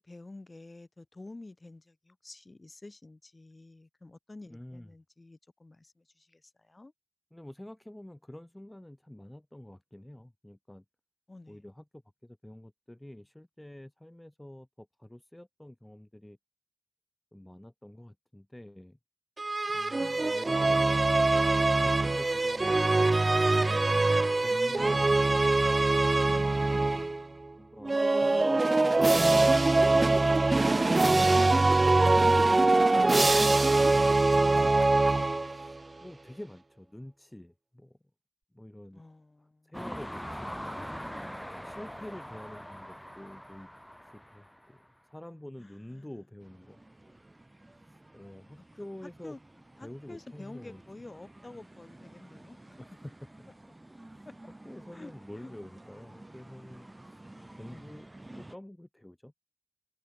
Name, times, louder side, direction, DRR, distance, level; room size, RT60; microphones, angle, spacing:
voice 1, 0.0-6.9 11.3-11.6 20.0-21.2 24.5-25.4 26.2-27.5 32.5-33.8 38.9-39.8 41.9-42.1 45.6-46.1 48.6-48.8 49.2-49.4 49.8-52.8 54.3-54.5 54.9-55.5 56.1-56.2 57.7-58.0, left 2 dB, 65° left, 7.6 m, -49 dB
voice 2, 4.5-4.9 7.3-10.8 11.5-16.4 17.3-19.0 19.7-20.9 21.8-23.8 24.0-25.2 27.5-30.5 32.6-33.2 33.7-34.8 35.5-38.0 38.5-39.0 39.4-40.6 41.5-43.7 44.1-44.8 45.1-46.8 47.9-49.4 49.8-50.8 52.8-52.9 54.6-58.1 58.3-59.3, left 1 dB, 25° left, 1.4 m, -48 dB
sound 1, 19.4-27.2 27.8-35.8, right 2 dB, 80° right, 0.4 m, -23 dB
sound 2, 39.7-44.8, equal, 5° left, 2.8 m, -41 dB
sound 3, 46.4-58.6, right 1 dB, 40° right, 5.9 m, -52 dB
wide cardioid pair, 45°, 0 cm